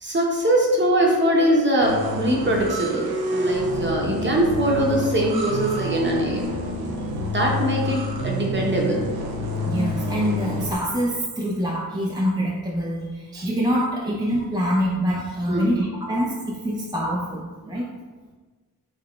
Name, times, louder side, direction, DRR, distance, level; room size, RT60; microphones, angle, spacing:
voice 1, 0.0-6.5 7.2-9.0 15.5-15.8, right 1 dB, 30° right, -1 dB, 0.8 m, -22 dB
sound 1, 1.8-10.7, equal, 70° right, 0.5 m, -28 dB
voice 2, 9.6-17.9, equal, 10° right, -4 dB, 0.4 m, -25 dB
3.6 x 3.5 x 2.3 m, 1.3 s
cardioid pair, 65°, 38 cm